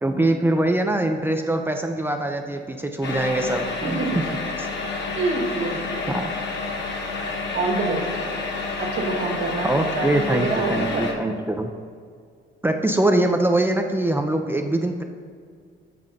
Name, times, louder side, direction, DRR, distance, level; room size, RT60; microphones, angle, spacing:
voice 1, 0.0-4.0 4.6-4.7 6.1-6.3 9.6-11.7 12.6-15.0, right 1 dB, 10° right, 4 dB, 0.5 m, -23 dB
sound 1, 3.0-11.1, left 3 dB, 60° left, 1.2 m, -29 dB
voice 2, 3.8-4.2 5.1-6.1 7.2-8.2 8.8-11.1, right 3 dB, 80° right, 0 dB, 1.6 m, -27 dB
7.7 x 6.1 x 3.9 m, 2.1 s
cardioid pair, 90°, 20 cm